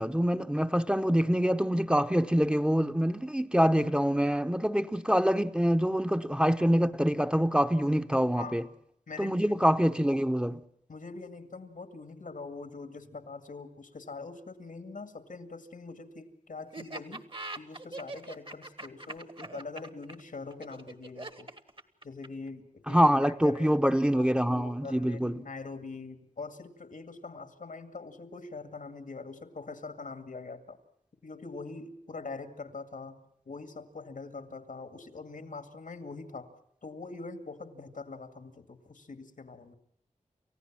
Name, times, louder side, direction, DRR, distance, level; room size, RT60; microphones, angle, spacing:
voice 1, 0.0-8.6 9.2-10.6 22.9-25.3, equal, 5° right, 0.8 m, -25 dB
voice 2, 8.4-8.7 9.1-9.7 10.9-17.2 17.5-21.5 22.0-23.8 24.1-30.8 31.2-33.2 33.5-36.5 36.8-39.7, left 3 dB, 90° left, 2.2 m, -43 dB
Laughter, 16.7-22.5, right 2 dB, 40° right, 1.4 m, -42 dB
29.0 x 15.5 x 7.4 m
wide cardioid pair, 70°, 13 cm